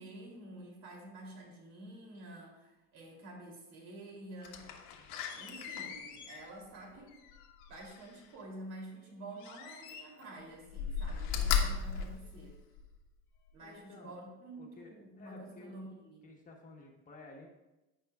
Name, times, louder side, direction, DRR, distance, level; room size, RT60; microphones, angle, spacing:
voice 1, 0.0-4.7 5.3-7.2 7.7-12.6 13.5-16.3, right 2 dB, 65° right, -2 dB, 3.0 m, -49 dB
Slam, 4.4-8.3 9.4-10.3 10.7-13.0 13.5-13.6, left 7 dB, 85° left, 1.3 m, -37 dB
voice 2, 13.6-14.2 14.6-15.9 16.2-17.5, left 3 dB, 25° left, 0 dB, 1.2 m, -53 dB
15.5 x 5.5 x 2.4 m, 1.0 s
cardioid pair, 150°, 31 cm